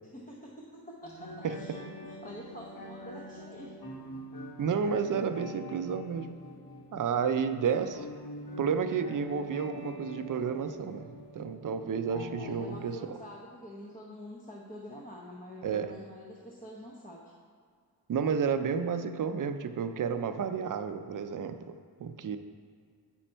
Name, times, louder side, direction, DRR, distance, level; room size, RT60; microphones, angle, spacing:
voice 1, 0.1-1.8 2.1-3.7 12.4-17.3, equal, 20° left, -3 dB, 0.7 m, -46 dB
sound 1, 1.0-12.9, left 1 dB, 60° left, 1.4 m, -44 dB
voice 2, 4.6-6.3 6.9-8.1 8.6-13.2 15.6-15.9 18.1-22.4, right 6 dB, 50° right, 9 dB, 0.5 m, -31 dB
7.7 x 5.1 x 4.4 m, 2.1 s
wide cardioid pair, 105°, 40 cm